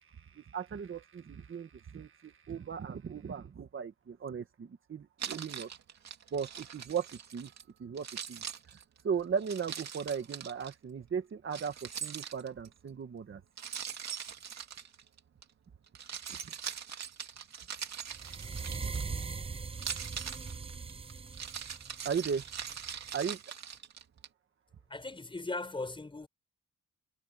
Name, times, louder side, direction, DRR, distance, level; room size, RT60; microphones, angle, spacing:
voice 1, 0.1-5.7 6.3-7.5 7.8-8.4 8.7-13.4 16.3-16.5 22.0-22.4 23.1-23.4, right 6 dB, 45° right, 1.7 m, -37 dB
Keys jangling, 5.2-7.6 8.0-10.7 11.5-12.7 13.6-15.4 15.9-19.2 19.7-24.3, right 8 dB, 60° right, 2.6 m, -42 dB
sound 1, 18.1-23.1, right 5 dB, 20° right, 0.5 m, -41 dB
voice 2, 24.9-26.3, left 2 dB, 15° left, 6.2 m, -38 dB
wide cardioid pair, 180°, 30 cm